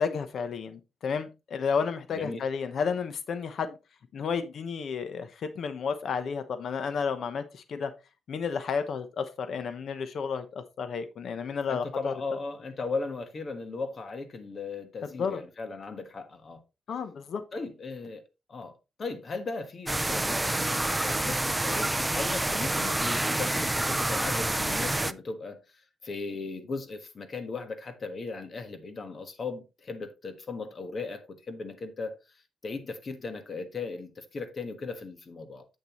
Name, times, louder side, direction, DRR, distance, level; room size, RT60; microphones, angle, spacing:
voice 1, 0.0-3.8 4.1-7.9 8.3-12.1 15.0-15.4 16.9-17.4, left 6 dB, 60° left, 0.9 m, -32 dB
voice 2, 2.1-2.4 11.7-16.6 17.5-18.2 18.5-32.2 32.6-35.7, left 3 dB, 40° left, 1.4 m, -37 dB
sound 1, 19.9-25.1, right 1 dB, 10° right, 0.4 m, -28 dB
8.0 x 6.9 x 3.1 m
cardioid pair, 130°, 0 cm